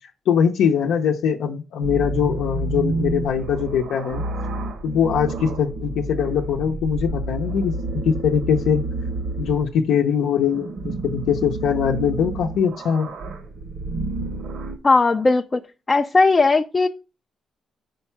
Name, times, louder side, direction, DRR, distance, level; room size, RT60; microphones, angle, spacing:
voice 1, 0.3-4.2 4.8-8.8 9.4-13.1, left 7 dB, 90° left, 1 dB, 0.7 m, -22 dB
sound 1, 1.8-9.7 10.3-14.8, right 2 dB, 65° right, 1.2 m, -29 dB
voice 2, 14.8-15.6 15.9-16.9, left 3 dB, 25° left, 4 dB, 0.4 m, -17 dB
5.2 x 4.4 x 5.8 m, 0.32 s
cardioid pair, 140°, 0 cm